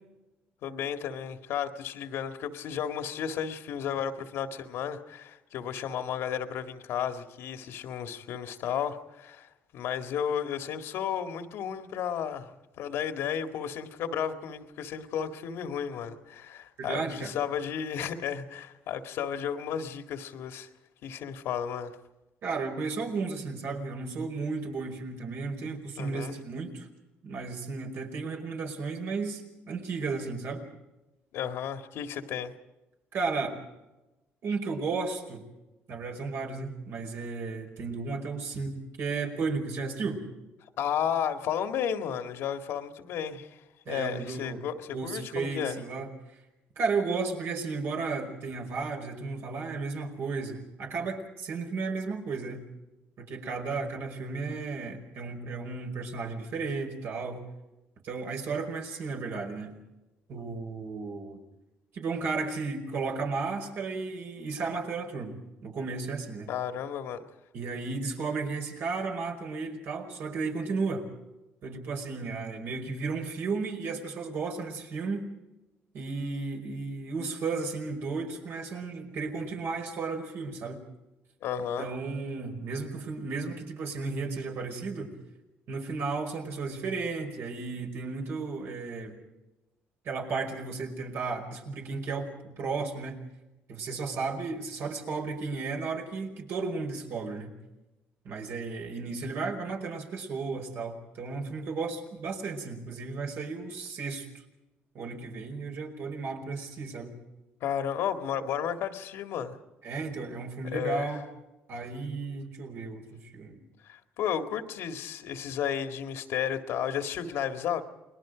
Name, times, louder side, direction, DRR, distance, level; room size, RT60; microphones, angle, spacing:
voice 1, 0.6-12.5 12.8-20.7 21.0-21.9 26.0-26.4 31.3-32.5 40.8-45.8 66.5-67.2 81.4-81.9 107.6-109.6 110.7-111.1 113.9-117.8, left 8 dB, 75° left, 2.0 m, -33 dB
voice 2, 16.8-17.3 22.4-26.9 27.2-30.6 33.1-33.6 34.4-35.4 35.9-38.7 39.0-40.2 43.9-44.6 44.9-46.1 46.8-52.6 53.2-57.4 58.0-59.7 60.3-61.4 61.9-65.4 65.6-66.5 67.5-71.1 71.6-75.3 75.9-80.8 81.6-85.1 85.7-89.2 90.1-93.2 93.7-97.5 98.3-104.3 104.9-107.2 109.8-111.2 111.7-113.6, right 4 dB, 65° right, 5.2 m, -34 dB
29.5 x 21.0 x 5.1 m
cardioid pair, 105°, 4 cm